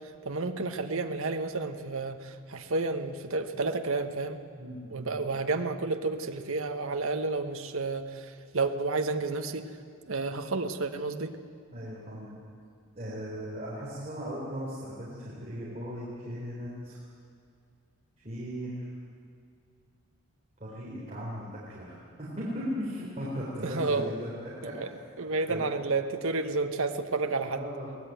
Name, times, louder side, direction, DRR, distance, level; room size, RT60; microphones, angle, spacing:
voice 1, 0.2-4.4 4.9-8.3 8.5-9.6 10.1-11.3 23.6-24.1 24.8-24.9 25.2-27.6, right 3 dB, 65° right, 7 dB, 1.1 m, -30 dB
voice 2, 4.6-5.2 11.7-12.3 13.0-17.0 18.2-18.9 20.6-25.0 25.4-25.6 27.4-28.0, equal, 30° right, -7 dB, 4.0 m, -37 dB
22.5 x 17.5 x 9.2 m, 2.3 s
head